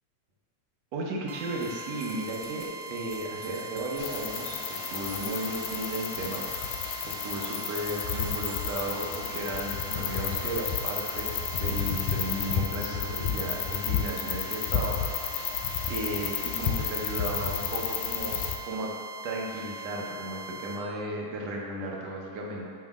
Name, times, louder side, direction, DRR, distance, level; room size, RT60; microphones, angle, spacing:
voice 1, 0.9-15.6 15.9-18.4 18.6-18.9 19.2-22.7, right 1 dB, 70° right, -2 dB, 1.9 m, -35 dB
sound 1, 1.3-20.8, right 1 dB, 90° right, 2.1 m, -41 dB
sound 2, 1.6-9.3, right 2 dB, 20° right, 0.9 m, -48 dB
sound 3, 4.0-18.6, left 7 dB, 90° left, 2.1 m, -32 dB
7.1 x 3.2 x 6.1 m, 2.5 s
omnidirectional pair, 3.4 m